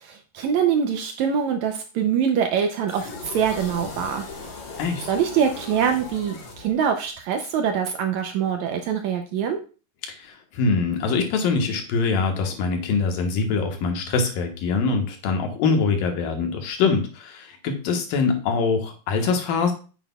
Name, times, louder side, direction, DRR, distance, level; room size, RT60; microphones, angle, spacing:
voice 1, 0.0-4.2 5.1-9.6, right 7 dB, 75° right, 5 dB, 1.7 m, -24 dB
sound 1, 2.9-7.1, left 3 dB, 45° left, 1.7 m, -38 dB
voice 2, 4.8-5.1 10.1-19.7, left 4 dB, 90° left, 4 dB, 3.0 m, -23 dB
9.2 x 8.5 x 2.3 m, 0.36 s
omnidirectional pair, 3.9 m